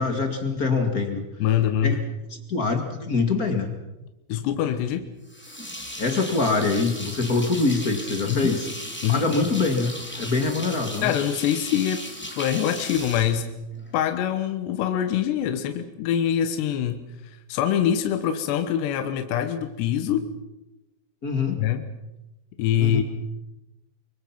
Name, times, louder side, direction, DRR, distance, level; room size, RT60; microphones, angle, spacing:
voice 1, 0.0-1.2 1.8-2.0 2.5-3.7 6.0-8.7 9.1-9.9 10.2-11.1 21.2-21.6 22.8-23.0, left 3 dB, 50° left, 4 dB, 1.0 m, -24 dB
voice 2, 1.4-2.0 4.3-5.1 8.3-8.5 9.0-9.3 11.0-12.1 12.4-13.5 13.9-17.0 17.5-20.3 21.6-21.9 22.6-23.0, left 10 dB, 75° left, 7 dB, 3.2 m, -24 dB
sound 1, 5.3-14.1, left 1 dB, 5° left, 2.1 m, -36 dB
24.5 x 24.0 x 5.9 m, 0.96 s
omnidirectional pair, 5.2 m